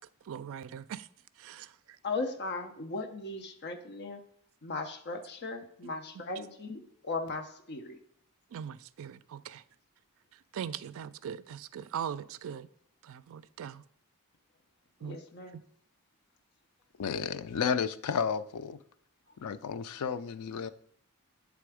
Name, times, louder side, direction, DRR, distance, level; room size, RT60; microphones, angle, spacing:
voice 1, 0.2-1.1 1.4-2.0 8.5-9.6 10.5-12.7 13.0-13.8 15.0-15.2 15.5-15.6, right 8 dB, 65° right, 0.3 m, -40 dB
voice 2, 2.0-4.2 4.6-8.0 15.0-15.6, left 3 dB, 50° left, 0.7 m, -37 dB
voice 3, 17.0-18.8 19.4-20.7, left 6 dB, 85° left, 0.4 m, -32 dB
7.6 x 3.5 x 4.8 m
head